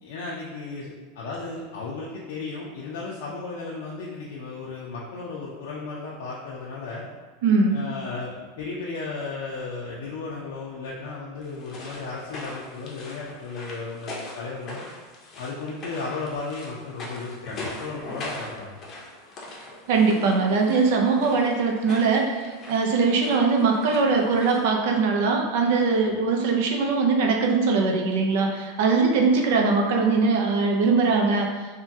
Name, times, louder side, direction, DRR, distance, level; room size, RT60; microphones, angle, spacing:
voice 1, 0.0-7.0 7.7-14.8 15.4-18.8, left 3 dB, 75° left, -5 dB, 0.5 m, -35 dB
voice 2, 7.4-7.8 19.9-31.5, right 4 dB, 65° right, 2 dB, 0.5 m, -21 dB
sound 1, 11.4-24.7, left 2 dB, 30° left, 0.6 m, -41 dB
3.3 x 2.2 x 2.6 m, 1.4 s
supercardioid pair, 140°, 0 cm